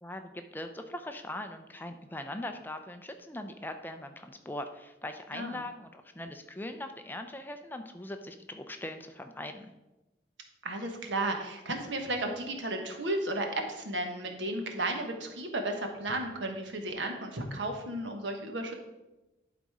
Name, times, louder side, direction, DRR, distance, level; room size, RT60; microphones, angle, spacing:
voice 1, 0.0-9.7, left 1 dB, 10° left, 7 dB, 0.5 m, -41 dB
voice 2, 10.6-18.7, right 2 dB, 85° right, 4 dB, 1.3 m, -34 dB
11.0 x 4.1 x 4.8 m, 1.0 s
head